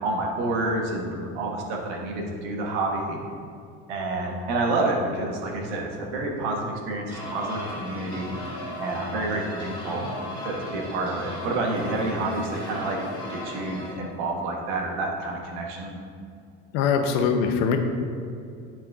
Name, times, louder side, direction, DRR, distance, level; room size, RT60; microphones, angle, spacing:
voice 1, 0.0-3.2 3.9-8.3 8.8-10.1 10.4-13.0 13.3-15.9, right 2 dB, 85° right, 0 dB, 1.5 m, -28 dB
sound 1, 7.1-14.0, left 1 dB, 15° left, 1.8 m, -36 dB
voice 2, 16.7-17.8, left 6 dB, 70° left, 5 dB, 0.9 m, -22 dB
10.5 x 4.4 x 3.6 m, 2.4 s
cardioid pair, 145°, 33 cm